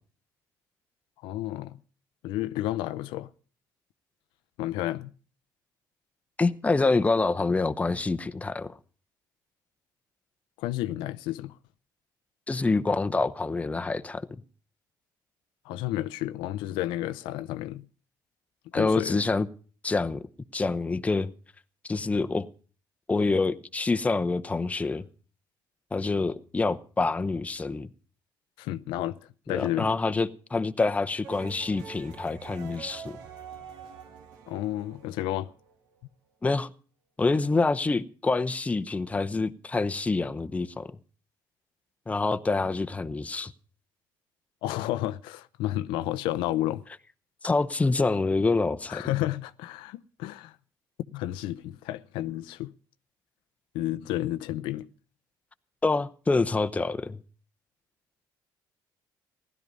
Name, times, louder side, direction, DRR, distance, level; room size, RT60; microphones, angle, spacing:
voice 1, 1.2-1.8 2.2-3.3 4.6-5.1 10.6-11.6 15.6-17.9 18.7-19.2 28.6-29.2 29.5-29.9 34.5-35.5 44.6-46.8 48.9-50.6 51.1-52.7 53.7-54.9, left 14 dB, 90° left, 0.6 m, -31 dB
voice 2, 6.4-8.7 12.5-14.3 18.7-19.5 19.8-20.2 20.5-21.3 21.9-22.5 23.1-25.0 25.9-27.9 29.5-33.2 36.4-36.7 37.2-41.0 42.1-43.5 47.4-49.0 55.8-57.2, left 3 dB, 15° left, 0.8 m, -26 dB
sound 1, 31.2-36.0, right 7 dB, 90° right, 2.0 m, -45 dB
16.0 x 12.0 x 5.3 m
cardioid pair, 95°, 8 cm